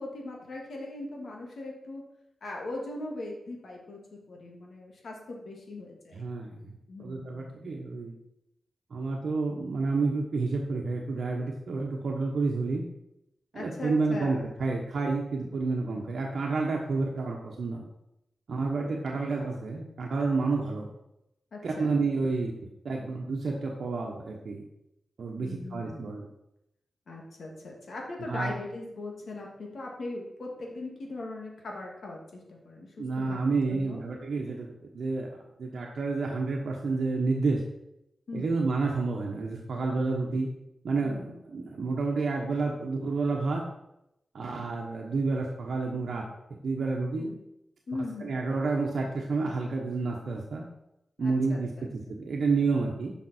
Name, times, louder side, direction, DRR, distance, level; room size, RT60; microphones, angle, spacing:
voice 1, 0.0-2.0 2.4-6.3 6.9-7.7 13.5-14.5 15.9-16.1 21.5-21.9 25.4-26.1 27.1-34.1 38.3-38.6 41.0-41.4 47.2-47.4 47.9-48.4 51.2-51.9, left 2 dB, 70° left, -1 dB, 2.3 m, -40 dB
voice 2, 6.1-6.7 7.0-8.1 8.9-12.8 13.5-17.8 18.5-20.9 21.6-22.5 22.8-24.6 25.2-26.3 28.3-28.5 33.0-35.3 35.6-37.6 38.3-40.5 40.8-43.6 44.3-46.2 46.6-47.3 48.2-50.6 51.2-53.1, right 3 dB, 70° right, 0 dB, 1.2 m, -29 dB
10.5 x 6.0 x 4.4 m, 0.85 s
wide cardioid pair, 115°, 0 cm